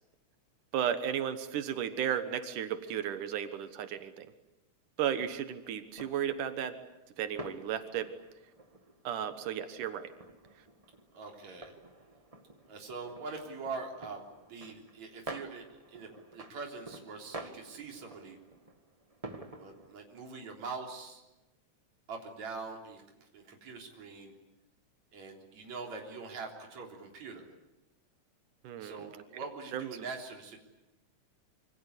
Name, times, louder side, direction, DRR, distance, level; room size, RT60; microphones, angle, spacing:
voice 1, 0.7-4.3 5.0-6.8 7.2-8.1 9.0-10.1 28.6-29.2 29.7-30.0, right 9 dB, 90° right, 9 dB, 2.9 m, -34 dB
sound 1, 5.1-19.9, right 2 dB, 20° right, 1.0 m, -49 dB
voice 2, 11.1-11.7 12.7-14.2 14.5-15.6 15.9-18.4 19.6-21.2 22.1-24.3 25.1-27.5 28.8-30.6, right 4 dB, 65° right, 1 dB, 4.9 m, -43 dB
27.0 x 25.0 x 8.4 m, 1.0 s
omnidirectional pair, 3.5 m